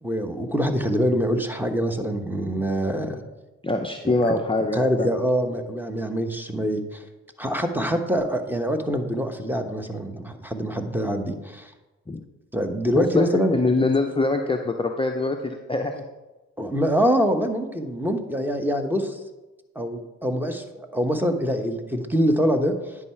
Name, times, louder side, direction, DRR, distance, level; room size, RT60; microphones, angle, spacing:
voice 1, 0.0-3.2 4.0-4.2 4.7-7.0 7.4-11.7 12.5-13.6 16.6-19.2 19.7-23.0, equal, 5° right, 6 dB, 1.1 m, -25 dB
voice 2, 3.6-5.1 12.1-12.2 13.0-16.0, left 3 dB, 15° left, 4 dB, 0.6 m, -24 dB
9.7 x 4.8 x 4.4 m, 1.1 s
supercardioid pair, 50°, 36 cm